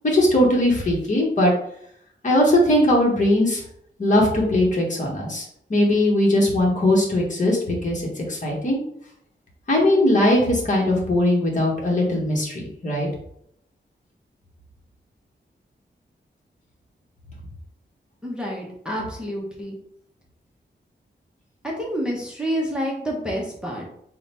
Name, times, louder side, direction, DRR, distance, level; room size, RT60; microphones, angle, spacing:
voice 1, 0.0-1.5 2.2-3.6 4.0-5.4 5.7-8.8 9.7-13.1, left 1 dB, 40° left, -2 dB, 1.0 m, -20 dB
voice 2, 18.2-19.8 21.6-23.9, equal, 5° right, -3 dB, 0.7 m, -28 dB
3.8 x 2.1 x 4.1 m, 0.70 s
wide cardioid pair, 160°, 19 cm